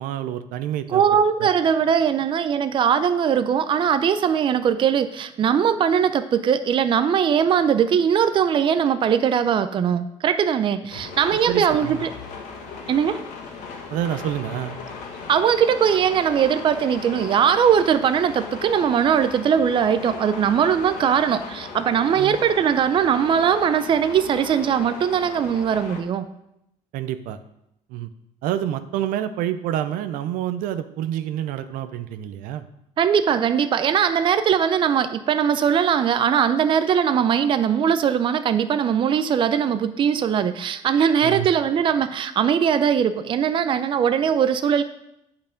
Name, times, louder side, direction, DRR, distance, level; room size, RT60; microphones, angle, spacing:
voice 1, 0.0-1.0 1.4-1.5 11.3-12.0 13.9-14.8 22.1-22.4 26.9-27.4 27.9-28.1 28.4-32.7 41.2-41.5, right 11 dB, 80° right, 11 dB, 0.6 m, -28 dB
voice 2, 0.9-12.1 12.9-13.2 15.3-26.3 33.0-44.8, right 8 dB, 35° right, 11 dB, 0.5 m, -20 dB
sound 1, 10.9-26.0, left 5 dB, 70° left, 1.6 m, -37 dB
8.9 x 5.7 x 5.1 m, 0.81 s
cardioid pair, 135°, 14 cm